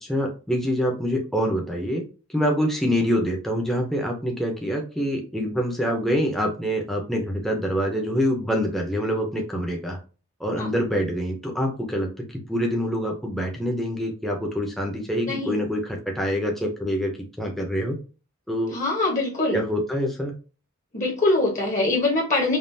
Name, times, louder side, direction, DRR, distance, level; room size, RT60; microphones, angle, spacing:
voice 1, 0.0-2.0 2.3-10.0 10.4-12.1 12.5-17.1 17.4-18.0 18.5-18.8 19.5-20.3, equal, ahead, 0 dB, 0.7 m, -25 dB
voice 2, 15.3-15.6 18.7-19.6 20.9-22.6, left 2 dB, 35° left, -1 dB, 1.1 m, -23 dB
5.3 x 2.5 x 2.7 m, 0.35 s
head